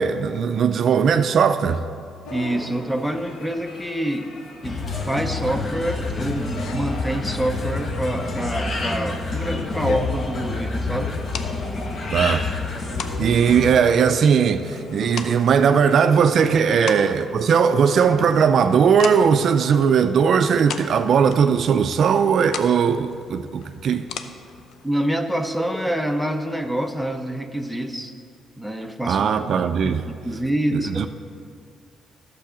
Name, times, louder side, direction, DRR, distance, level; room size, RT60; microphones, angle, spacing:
voice 1, 0.0-1.8 12.1-12.5 13.2-24.1 29.1-30.0 30.7-31.1, right 6 dB, 60° right, 0.4 m, -18 dB
sound 1, 2.2-15.1, left 2 dB, 90° left, 1.0 m, -41 dB
voice 2, 2.3-4.3 4.6-11.2 16.4-16.9 24.8-28.1 28.6-29.2 29.5-31.1, right 1 dB, 5° left, 0.8 m, -26 dB
sound 2, 4.6-13.8, left 3 dB, 45° left, 1.2 m, -28 dB
sound 3, 5.0-24.9, left 6 dB, 70° left, 0.6 m, -39 dB
12.0 x 6.8 x 5.0 m
cardioid pair, 90°, 0 cm